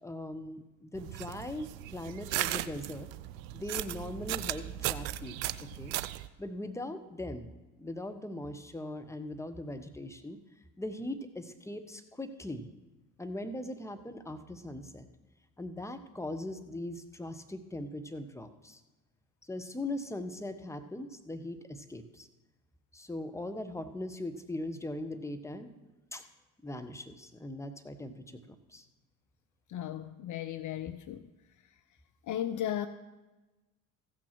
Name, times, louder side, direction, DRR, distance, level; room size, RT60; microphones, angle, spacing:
voice 1, 0.0-3.1 3.5-5.4 5.7-5.9 6.4-7.5 7.8-10.4 10.8-12.7 13.2-15.1 15.6-18.8 19.4-22.3 22.9-25.8 26.1-26.2 26.6-28.9, left 1 dB, 5° left, 9 dB, 1.1 m, -40 dB
sound 1, 0.9-6.3, right 15 dB, 75° right, 0.6 m, -36 dB
voice 2, 29.7-31.3 32.3-32.9, left 11 dB, 50° left, 12 dB, 0.6 m, -35 dB
15.0 x 6.2 x 6.0 m, 1.1 s
hypercardioid pair, 55°, 41 cm